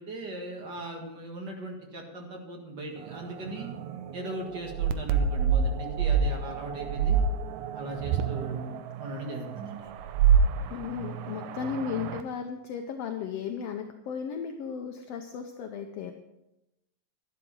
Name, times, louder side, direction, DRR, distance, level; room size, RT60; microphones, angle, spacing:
voice 1, 0.0-3.7 4.1-7.2 7.7-8.7 9.0-9.9, right 1 dB, 40° right, 1 dB, 2.2 m, -38 dB
sound 1, 3.0-12.2, right 6 dB, 80° right, 2.1 m, -28 dB
voice 2, 10.7-16.1, left 7 dB, 70° left, 5 dB, 1.6 m, -35 dB
12.0 x 11.0 x 4.7 m, 0.91 s
omnidirectional pair, 3.5 m